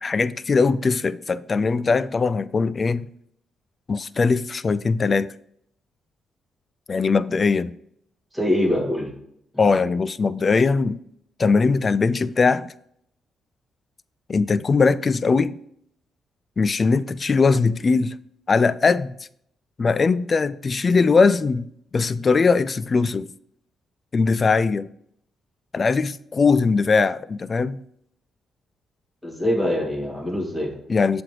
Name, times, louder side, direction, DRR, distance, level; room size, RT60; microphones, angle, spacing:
voice 1, 0.0-3.1 3.9-5.3 6.9-7.7 9.6-11.0 11.4-12.7 14.3-15.5 16.6-18.2 18.5-19.1 19.8-21.7 21.9-23.3 24.1-24.9 25.7-27.8 30.9-31.2, left 4 dB, 45° left, 0.3 m, -20 dB
voice 2, 8.3-9.1 9.5-9.7 29.2-30.8, left 1 dB, ahead, 3.0 m, -24 dB
7.5 x 3.4 x 4.8 m
supercardioid pair, 50°, 0 cm